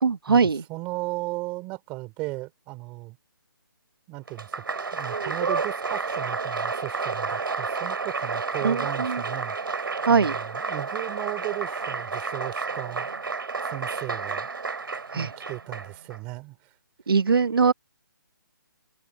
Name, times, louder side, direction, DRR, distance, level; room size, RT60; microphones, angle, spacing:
voice 1, 0.0-0.6 8.6-9.2 10.1-10.4 15.1-15.3 17.1-17.7, right 5 dB, 90° right, 1.2 m, -21 dB
voice 2, 0.7-3.2 4.1-4.6 4.9-9.6 9.8-13.1 13.6-14.5 15.1-16.7, right 21 dB, 10° right, 4.1 m, -36 dB
Applause, 4.3-16.2, right 4 dB, 75° right, 3.9 m, -31 dB
hypercardioid pair, 180°, 12 cm